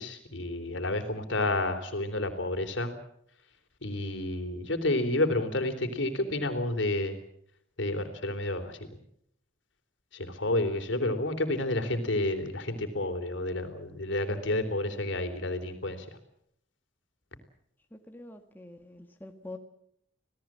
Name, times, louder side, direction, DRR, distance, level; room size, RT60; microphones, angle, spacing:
voice 1, 0.0-2.9 3.8-7.2 7.8-8.8 10.1-16.1, left 2 dB, 70° left, 3.6 m, -30 dB
voice 2, 17.9-19.6, left 2 dB, 10° left, 1.8 m, -45 dB
27.0 x 17.5 x 7.6 m
head